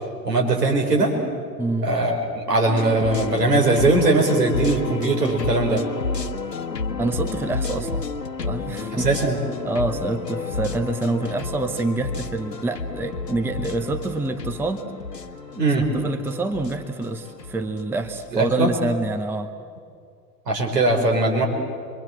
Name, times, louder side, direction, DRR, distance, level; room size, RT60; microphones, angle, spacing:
voice 1, 0.2-1.1 1.8-5.8 8.9-9.4 15.6-15.9 18.3-18.7 20.5-21.5, right 2 dB, 75° right, 1 dB, 4.8 m, -20 dB
voice 2, 1.6-1.9 7.0-8.1 8.4-9.1 9.6-14.8 15.9-19.5, right 2 dB, 5° right, 7 dB, 0.9 m, -26 dB
sound 1, 2.6-18.8, left 4 dB, 80° left, 1.7 m, -31 dB
28.0 x 23.0 x 7.7 m, 2.3 s
figure-of-eight pair, 95°, 49 cm